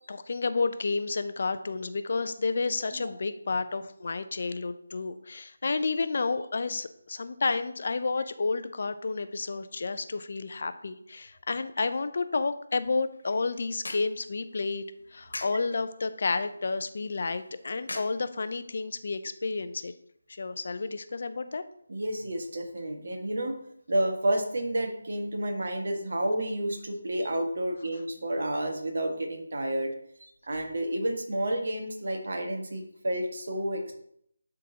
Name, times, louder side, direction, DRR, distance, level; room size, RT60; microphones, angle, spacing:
voice 1, 0.1-14.8 15.1-19.9 20.3-21.6, left 4 dB, 55° left, 11 dB, 0.6 m, -31 dB
sound 1, 13.0-18.9, left 2 dB, 85° left, 1.6 m, -46 dB
voice 2, 21.9-23.6 23.9-29.9 30.4-33.9, right 1 dB, 65° right, 3 dB, 1.6 m, -30 dB
11.0 x 3.9 x 2.9 m, 0.68 s
figure-of-eight pair, 165°, 0 cm